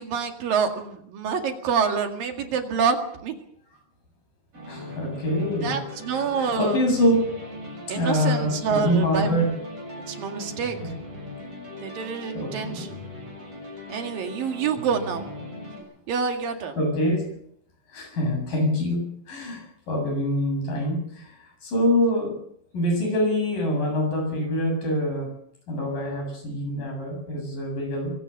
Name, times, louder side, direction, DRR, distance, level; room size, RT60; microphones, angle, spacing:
voice 1, 0.0-3.3 5.6-6.8 7.9-9.4 10.1-10.8 11.8-12.9 13.9-15.3 16.1-16.8, right 6 dB, 75° right, 4 dB, 3.8 m, -27 dB
sound 1, 4.5-15.8, left 1 dB, 40° right, 8.0 m, -39 dB
voice 2, 4.7-5.8 6.1-7.2 7.9-9.5 10.8-10.9 12.3-12.9 16.8-17.3 17.9-22.4 22.7-25.3 25.7-28.1, equal, 70° left, 3 dB, 9.3 m, -25 dB
24.0 x 17.0 x 6.7 m, 0.69 s
omnidirectional pair, 4.0 m